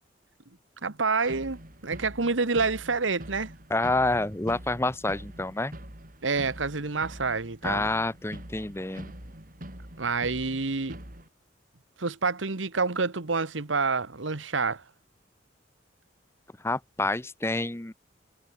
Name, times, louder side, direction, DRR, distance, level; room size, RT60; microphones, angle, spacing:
voice 1, 0.8-3.5 6.2-7.9 10.0-11.0 12.0-14.8, right 4 dB, 85° right, 1.4 m, -28 dB
sound 1, 1.2-11.3, right 1 dB, 45° right, 5.9 m, -44 dB
voice 2, 3.7-5.7 7.6-9.1 16.6-17.9, left 2 dB, 15° left, 0.8 m, -28 dB
head